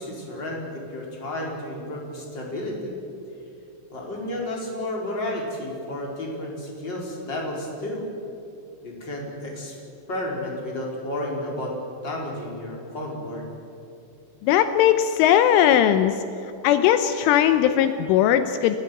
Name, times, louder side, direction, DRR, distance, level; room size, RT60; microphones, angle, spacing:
voice 1, 0.0-2.9 3.9-8.1 8.8-9.8 10.1-11.8 12.0-13.4, left 1 dB, 25° left, -1 dB, 4.9 m, -32 dB
voice 2, 14.4-16.2 16.6-18.8, left 10 dB, 80° left, 9 dB, 3.3 m, -19 dB
29.0 x 15.5 x 9.3 m, 2.9 s
omnidirectional pair, 5.7 m